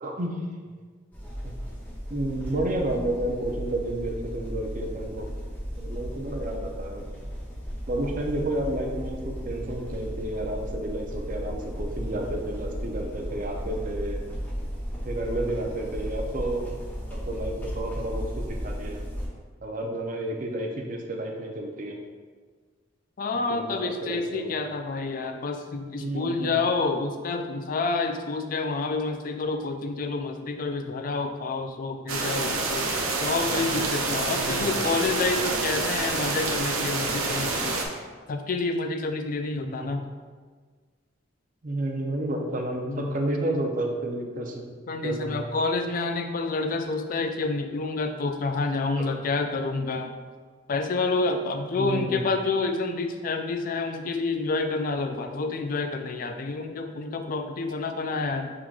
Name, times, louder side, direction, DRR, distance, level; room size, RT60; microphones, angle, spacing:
voice 1, 0.0-0.4 1.4-1.5 2.1-5.3 5.8-7.1 7.9-14.2 15.0-16.7 17.1-19.1 19.6-22.0 23.5-24.6 26.0-26.5 34.3-34.7 39.5-39.9 41.6-44.7 45.0-45.5 48.9-49.2 51.8-52.2, right 1 dB, 40° right, 2 dB, 0.5 m, -31 dB
sound 1, 1.1-19.3, equal, 10° left, 0.7 m, -35 dB
voice 2, 23.2-32.9 33.2-37.8 38.3-40.0 42.9-43.3 44.9-50.1 50.7-58.5, left 3 dB, 40° left, 6 dB, 0.3 m, -28 dB
sound 2, 32.1-37.9, right 3 dB, 90° right, 0.6 m, -27 dB
6.0 x 3.7 x 2.4 m, 1.5 s
head